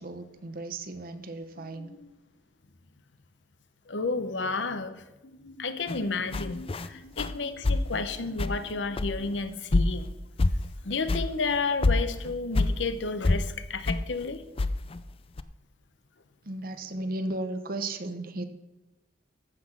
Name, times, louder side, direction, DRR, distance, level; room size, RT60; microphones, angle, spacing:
voice 1, 0.0-1.9 16.4-18.4, right 2 dB, 50° right, 9 dB, 1.0 m, -35 dB
sound 1, 1.5-2.1 3.9-4.8 5.2-9.4, left 1 dB, 50° left, 1.0 m, -50 dB
voice 2, 3.9-5.0 5.6-10.1 10.8-14.4, left 4 dB, 80° left, 11 dB, 0.9 m, -31 dB
sound 2, 5.9-6.0 6.3-6.9 7.2-7.4 7.6-8.0 8.4-8.7 9.0-9.3 9.7-10.1 10.4-10.7 11.1-11.3 11.5-11.6 11.8-12.8 13.2-13.5 13.9-14.0 14.6-15.0 15.4-15.5, left 2 dB, 30° left, 0.5 m, -26 dB
14.5 x 6.0 x 6.0 m, 1.0 s
head